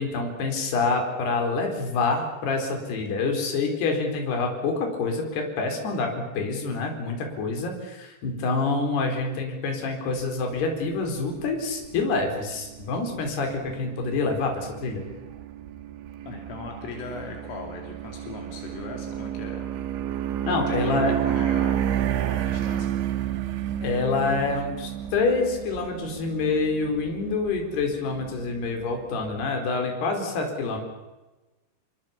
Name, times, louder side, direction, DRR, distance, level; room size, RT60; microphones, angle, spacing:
voice 1, 0.0-15.0 20.5-21.1 23.8-30.8, left 3 dB, 55° left, 3 dB, 6.2 m, -27 dB
sound 1, 10.2-29.5, right 11 dB, 70° right, 3.6 m, -31 dB
voice 2, 16.3-19.7 20.7-21.8 22.3-22.9, left 4 dB, 75° left, 2 dB, 5.4 m, -38 dB
28.5 x 23.5 x 7.2 m, 1.1 s
omnidirectional pair, 5.9 m